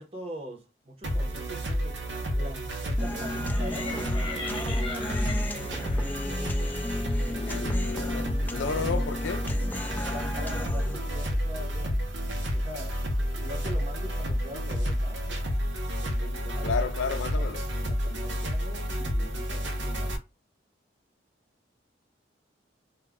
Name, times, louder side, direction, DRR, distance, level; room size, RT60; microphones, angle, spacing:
voice 1, 0.0-2.0 2.3-5.3 10.0-12.0 12.5-15.2 16.0-16.8 17.4-17.5 17.8-20.1, equal, 30° right, 0.7 m, -43 dB
sound 1, 1.0-20.2, equal, 80° right, 0.7 m, -30 dB
Human voice, 3.0-11.0, left 1 dB, 10° left, 0.3 m, -35 dB
sound 2, 3.5-8.3, left 3 dB, 30° left, 0.7 m, -42 dB
voice 2, 7.3-9.5 16.6-17.6, left 5 dB, 85° left, 0.5 m, -32 dB
2.3 x 2.1 x 3.5 m
head